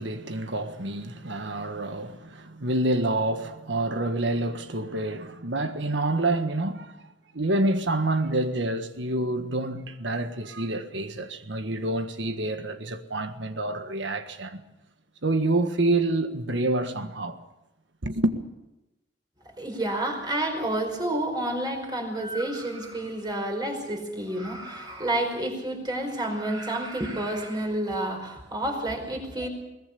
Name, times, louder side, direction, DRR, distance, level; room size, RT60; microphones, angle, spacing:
voice 1, 0.0-7.0 7.3-14.6 15.2-17.4 18.0-18.4, right 2 dB, 70° right, 1.6 m, -27 dB
voice 2, 19.6-29.5, right 1 dB, 25° right, 5.0 m, -29 dB
22.0 x 20.5 x 7.0 m
head